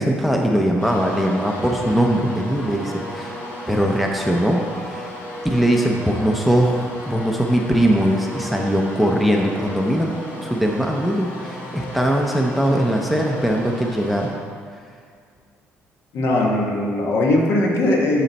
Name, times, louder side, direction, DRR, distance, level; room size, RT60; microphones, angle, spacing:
voice 1, 0.0-3.4 3.7-5.1 5.4-10.1 10.4-14.3, equal, ahead, 1 dB, 0.5 m, -20 dB
sound 1, 0.8-14.3, left 1 dB, 45° left, 1.5 m, -34 dB
voice 2, 16.1-18.2, left 1 dB, 60° left, -1 dB, 1.3 m, -19 dB
11.5 x 4.4 x 4.1 m, 2.1 s
cardioid pair, 140°, 5 cm